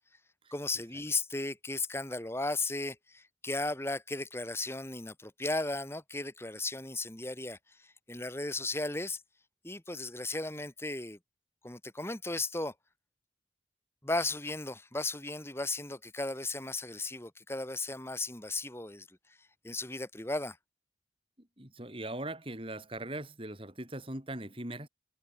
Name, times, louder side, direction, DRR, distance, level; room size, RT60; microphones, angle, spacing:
voice 1, 0.5-9.2 9.6-11.2 11.6-12.7 14.0-19.1 19.6-20.6, left 2 dB, 15° left, 2.0 m, -35 dB
voice 2, 21.4-24.9, right 1 dB, 30° right, 3.9 m, -40 dB
head